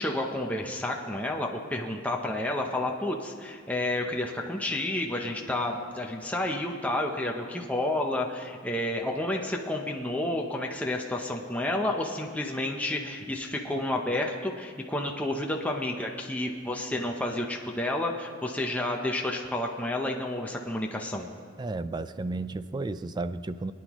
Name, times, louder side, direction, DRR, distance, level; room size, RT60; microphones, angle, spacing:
voice 1, 0.0-21.3, left 1 dB, 5° left, 0 dB, 0.7 m, -30 dB
voice 2, 21.6-23.7, right 2 dB, 20° right, 13 dB, 0.3 m, -33 dB
28.5 x 9.6 x 3.1 m, 2.1 s
head